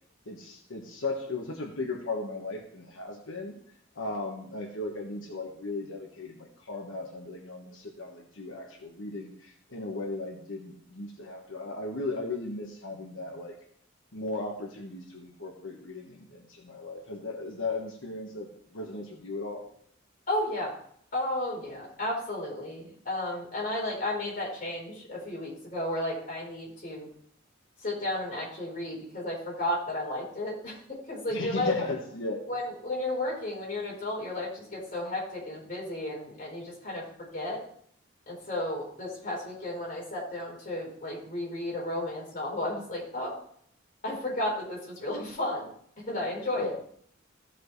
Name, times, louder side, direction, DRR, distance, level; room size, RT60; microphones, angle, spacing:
voice 1, 0.3-3.6 3.9-13.5 14.1-19.6 31.3-32.4 46.5-46.7, left 2 dB, 90° left, 0 dB, 1.5 m, -36 dB
voice 2, 20.3-20.7 21.1-27.1 27.8-31.7 32.5-37.0 37.3-37.6 38.3-43.4 44.0-45.7 46.1-46.7, left 1 dB, 45° left, -4 dB, 4.3 m, -33 dB
15.5 x 5.8 x 3.2 m, 0.63 s
head